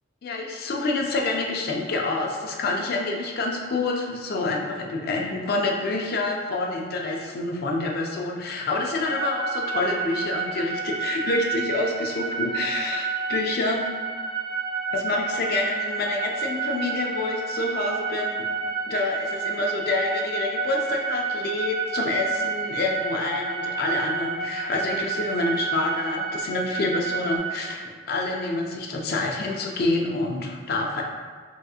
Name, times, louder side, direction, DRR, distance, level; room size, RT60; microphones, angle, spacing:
voice 1, 0.2-13.9 14.9-18.4 18.9-27.8 28.1-31.0, left 2 dB, 55° left, 0 dB, 0.4 m, -27 dB
sound 1, 9.0-27.4, right 5 dB, 80° left, 1.3 m, -30 dB
3.4 x 2.8 x 2.3 m, 1.5 s
head